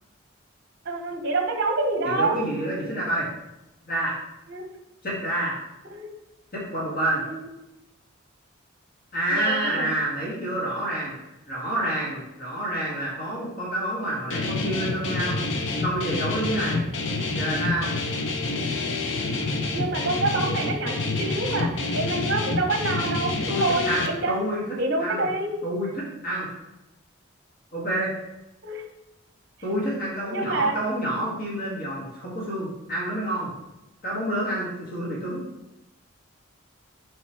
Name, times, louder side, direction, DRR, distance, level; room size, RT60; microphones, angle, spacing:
voice 1, 0.8-2.4 4.5-4.6 5.9-6.1 7.2-7.5 9.3-9.9 19.7-23.3 23.6-24.3 24.8-25.5 28.6-28.8 30.3-30.8, right 3 dB, 50° right, 4 dB, 0.8 m, -27 dB
voice 2, 2.0-3.3 3.9-4.1 5.0-5.5 6.5-7.2 9.1-11.1 11.5-16.8 17.3-17.9 23.5-25.3 25.6-26.5 27.7-28.1 29.6-33.5 34.0-35.4, right 1 dB, 45° left, -5 dB, 2.0 m, -28 dB
Guitar, 14.3-24.1, left 3 dB, 65° left, 0.7 m, -27 dB
7.0 x 4.4 x 3.2 m, 0.93 s
head